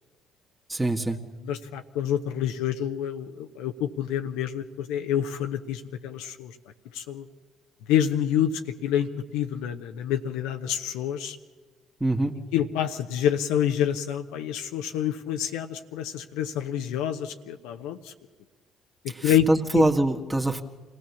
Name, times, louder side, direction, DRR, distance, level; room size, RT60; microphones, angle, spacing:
voice 1, 0.7-1.2 12.0-12.3 19.1-20.6, right 1 dB, 10° right, 2 dB, 1.8 m, -24 dB
voice 2, 1.4-6.6 6.9-7.3 7.9-11.4 12.5-18.1 19.2-19.5 19.7-19.8, left 10 dB, 70° left, 6 dB, 1.0 m, -27 dB
27.0 x 17.5 x 7.1 m, 1.3 s
figure-of-eight pair, 50°, 0 cm